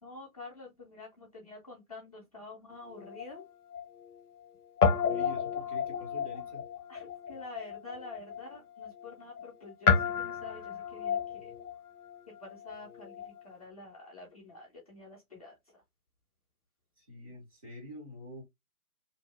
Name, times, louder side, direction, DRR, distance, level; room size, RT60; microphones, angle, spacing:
voice 1, 0.0-3.4 6.9-11.5 12.3-15.5, left 2 dB, 25° left, 0.6 m, -48 dB
Guitar, 2.7-4.5 4.8-13.4, left 6 dB, 90° left, 0.5 m, -32 dB
voice 2, 5.1-6.6 17.0-18.4, equal, 25° right, 0.8 m, -46 dB
2.6 x 2.2 x 2.4 m
figure-of-eight pair, 140°, 44 cm